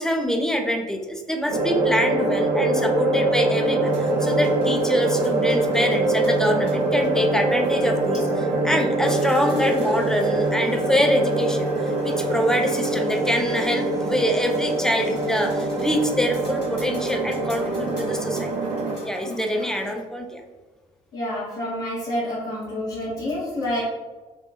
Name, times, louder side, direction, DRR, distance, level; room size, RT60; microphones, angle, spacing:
voice 1, 0.0-18.5 19.0-20.4, equal, 5° left, 3 dB, 0.3 m, -25 dB
sound 1, 1.5-19.0, right 2 dB, 50° right, 0.6 m, -24 dB
sound 2, 3.8-20.0, equal, 75° left, 1.2 m, -45 dB
voice 2, 19.2-19.7 21.1-23.8, left 1 dB, 55° left, -10 dB, 0.9 m, -28 dB
3.0 x 2.2 x 2.3 m, 1.2 s
figure-of-eight pair, 50°, 20 cm